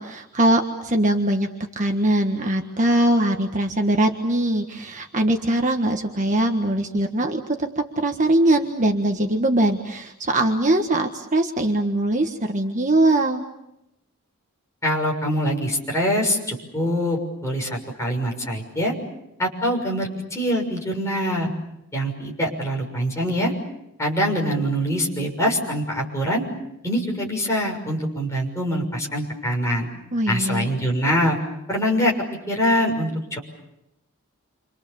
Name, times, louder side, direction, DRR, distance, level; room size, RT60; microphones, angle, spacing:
voice 1, 0.0-1.5 1.7-13.4 30.1-30.7, right 1 dB, 35° right, 4 dB, 1.5 m, -21 dB
voice 2, 14.8-18.9 19.4-21.5 21.9-23.5 24.0-26.4 26.8-29.9 30.3-31.4 31.7-32.1 32.5-33.4, equal, 15° left, -1 dB, 6.4 m, -24 dB
29.5 x 26.0 x 7.1 m, 0.87 s
head